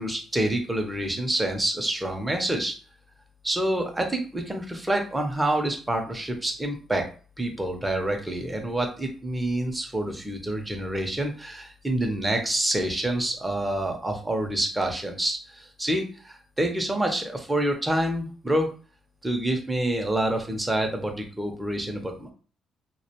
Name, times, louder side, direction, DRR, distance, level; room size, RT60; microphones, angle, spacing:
voice 1, 0.0-2.7 3.4-7.1 7.4-18.7 19.2-22.3, right 1 dB, 15° right, 3 dB, 0.6 m, -27 dB
2.4 x 2.1 x 2.8 m, 0.39 s
cardioid pair, 90°, 0 cm